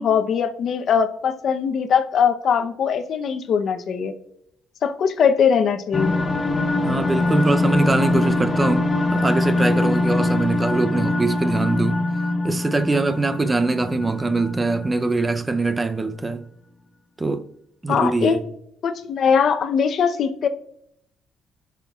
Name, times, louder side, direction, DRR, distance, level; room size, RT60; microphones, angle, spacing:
voice 1, 0.0-4.1 4.8-6.2 17.9-18.4 18.8-20.5, left 7 dB, 65° left, 0.7 m, -21 dB
sound 1, 5.9-15.3, left 2 dB, 30° left, 0.9 m, -23 dB
voice 2, 6.8-12.1 12.4-16.4 17.2-17.4 17.8-18.4, right 3 dB, 20° right, 0.5 m, -23 dB
15.0 x 5.8 x 2.4 m
cardioid pair, 90°, 0 cm